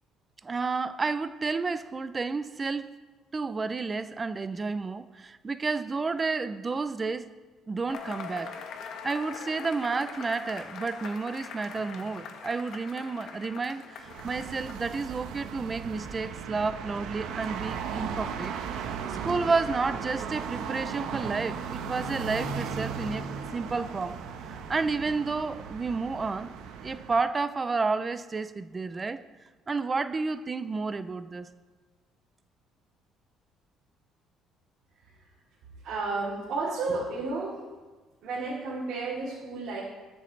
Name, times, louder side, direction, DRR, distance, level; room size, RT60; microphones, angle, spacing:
voice 1, 0.4-2.9 3.3-7.3 7.7-8.5 8.8-18.5 18.8-23.3 23.5-24.2 24.7-26.5 26.8-29.2 29.7-31.5, right 4 dB, 15° right, 12 dB, 0.5 m, -31 dB
Cheering / Applause / Crowd, 7.9-15.1, left 6 dB, 55° left, 1.1 m, -42 dB
sound 1, 14.0-27.3, right 6 dB, 75° right, 1.1 m, -36 dB
voice 2, 35.8-37.6 38.2-39.8, right 3 dB, 50° right, -9 dB, 3.1 m, -32 dB
22.0 x 7.8 x 3.3 m, 1.3 s
cardioid pair, 175°, 0 cm